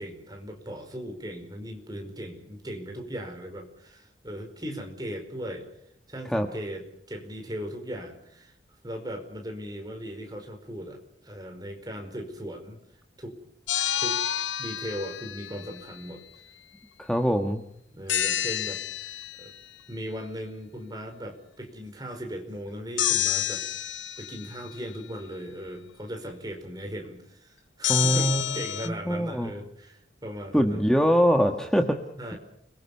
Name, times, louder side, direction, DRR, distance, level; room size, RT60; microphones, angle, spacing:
voice 1, 0.0-5.7 6.1-8.5 8.8-12.8 13.2-13.4 14.0-14.2 14.6-16.2 17.9-19.5 19.9-30.8 32.2-32.4, equal, 20° right, 4 dB, 5.0 m, -38 dB
sound 1, 13.7-15.8 18.1-19.6 23.0-24.7 27.8-28.9, left 11 dB, 90° left, 1.2 m, -29 dB
voice 2, 17.0-17.6 27.9-28.6 28.8-29.5 30.5-32.0, equal, 5° left, 4 dB, 1.5 m, -23 dB
29.5 x 23.0 x 5.6 m, 0.73 s
head